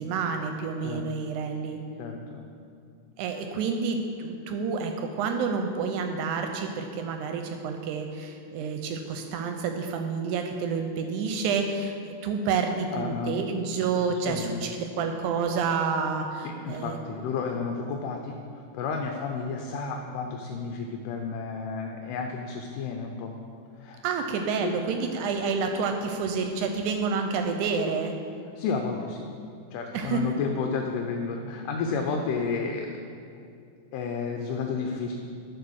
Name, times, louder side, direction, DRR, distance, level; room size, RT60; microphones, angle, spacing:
voice 1, 0.0-1.8 3.2-11.9 12.2-17.0 24.0-28.1 29.9-30.2, right 5 dB, 80° right, 5 dB, 1.9 m, -29 dB
voice 2, 2.0-2.5 12.9-13.5 14.1-14.6 16.4-23.4 23.8-24.0 24.6-24.8 28.6-29.3 29.7-33.0 33.9-35.1, left 5 dB, 85° left, 2 dB, 2.2 m, -31 dB
11.0 x 4.2 x 6.3 m, 2.4 s
omnidirectional pair, 3.7 m